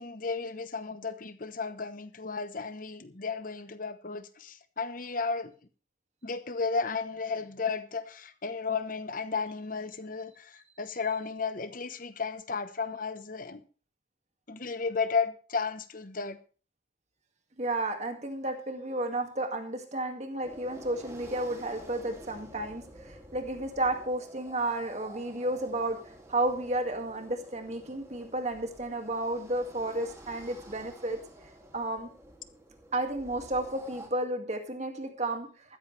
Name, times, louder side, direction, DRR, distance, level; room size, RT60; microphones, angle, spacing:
voice 1, 0.0-5.5 6.2-13.6 14.5-16.4, left 4 dB, 45° left, 1.0 m, -33 dB
voice 2, 17.6-26.0 26.3-31.2 31.7-32.1 32.9-35.5, right 2 dB, 35° right, 2.2 m, -32 dB
sound 1, 20.4-34.1, right 1 dB, 15° right, 2.5 m, -50 dB
14.5 x 13.5 x 3.4 m
head